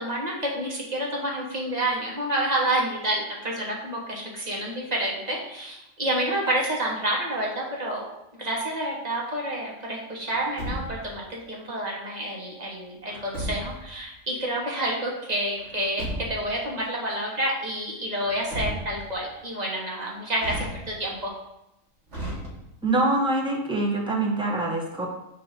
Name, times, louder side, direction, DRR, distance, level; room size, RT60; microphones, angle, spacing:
voice 1, 0.0-8.0 8.4-21.3, right 1 dB, 35° right, -3 dB, 1.3 m, -29 dB
Truck, 10.3-11.2 13.1-13.9 15.6-16.6 18.2-19.2 20.4-21.2 22.1-23.0, right 1 dB, 60° right, 1.7 m, -35 dB
voice 2, 22.8-25.1, right 2 dB, 5° right, -2 dB, 0.9 m, -24 dB
6.9 x 2.8 x 5.1 m, 0.89 s
omnidirectional pair, 1.4 m